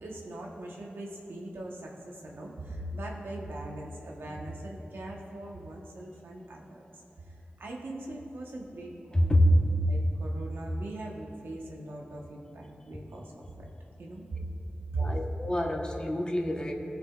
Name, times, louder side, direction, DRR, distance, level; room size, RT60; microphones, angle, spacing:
voice 1, 0.0-6.8 7.6-9.4 9.9-13.7 14.0-14.4 14.9-15.0, right 2 dB, 90° right, -1 dB, 1.2 m, -40 dB
voice 2, 9.1-9.6 15.0-16.7, equal, 25° left, 1 dB, 1.1 m, -25 dB
20.0 x 6.6 x 2.4 m, 2.9 s
wide cardioid pair, 65°, 4 cm